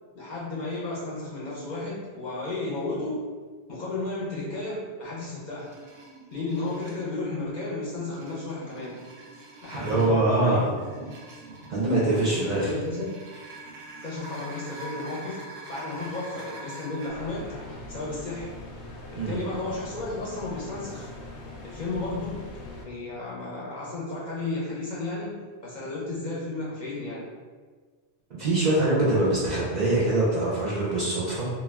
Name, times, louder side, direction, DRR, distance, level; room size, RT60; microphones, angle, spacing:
voice 1, 0.1-3.3 3.7-5.8 6.3-9.0 9.6-10.8 12.2-13.2 14.0-15.4 15.7-17.5 17.9-18.6 19.1-21.1 21.6-22.5 22.8-27.3, left 2 dB, 50° left, -6 dB, 0.6 m, -33 dB
sound 1, 5.6-7.1 7.8-17.1, right 2 dB, 85° right, 0.9 m, -44 dB
voice 2, 9.8-10.7 11.7-12.7 19.1-19.5 28.4-31.5, right 2 dB, 50° right, -6 dB, 0.5 m, -23 dB
sound 2, 17.1-22.8, left 2 dB, 85° left, 0.9 m, -41 dB
2.3 x 2.2 x 3.3 m, 1.5 s
omnidirectional pair, 1.1 m